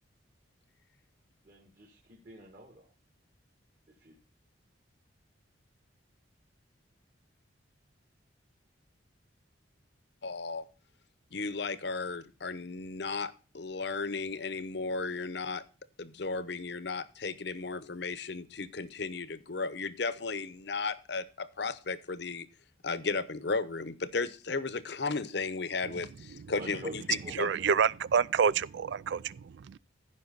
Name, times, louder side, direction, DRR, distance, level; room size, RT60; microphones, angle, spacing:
voice 1, 1.4-2.9 3.9-4.2 26.6-26.9 27.2-27.6, right 1 dB, 45° right, 2.1 m, -46 dB
voice 2, 10.2-10.6 11.3-15.6 16.0-22.5 22.8-27.5, left 4 dB, 60° left, 0.8 m, -35 dB
voice 3, 27.4-29.8, right 6 dB, 60° right, 0.3 m, -28 dB
15.0 x 5.6 x 4.0 m
head